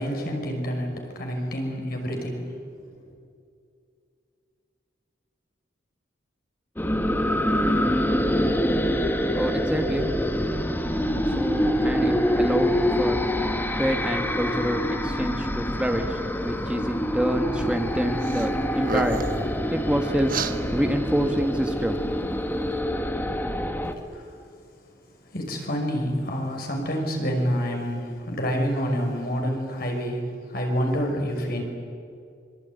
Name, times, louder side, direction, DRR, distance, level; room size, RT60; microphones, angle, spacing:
voice 1, 0.0-2.6 3.0-3.1 23.9-24.5 25.3-31.6, equal, 55° left, 2 dB, 5.8 m, -28 dB
sound 1, 6.8-23.9, equal, 10° left, 1.7 m, -25 dB
voice 2, 9.3-10.1 11.0-13.3 13.8-18.5 18.7-19.2 19.7-20.3 20.7-22.0, equal, 5° right, 4 dB, 1.5 m, -27 dB
sound 2, 18.2-18.5 18.8-19.4 20.3-20.5, right 5 dB, 50° right, 1.5 m, -30 dB
25.0 x 24.5 x 9.6 m, 2.4 s
head